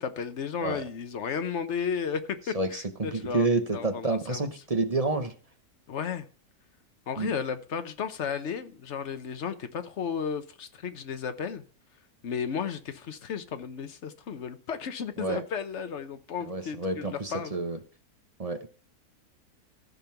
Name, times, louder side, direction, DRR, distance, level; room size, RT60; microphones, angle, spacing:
voice 1, 0.0-4.5 5.9-6.3 7.1-11.6 12.2-17.5, left 6 dB, 55° left, 1.1 m, -34 dB
voice 2, 2.5-5.3 7.2-7.3 15.2-15.4 16.5-17.8 18.4-18.7, right 3 dB, 30° right, 0.9 m, -29 dB
14.5 x 5.3 x 5.8 m
omnidirectional pair, 1.6 m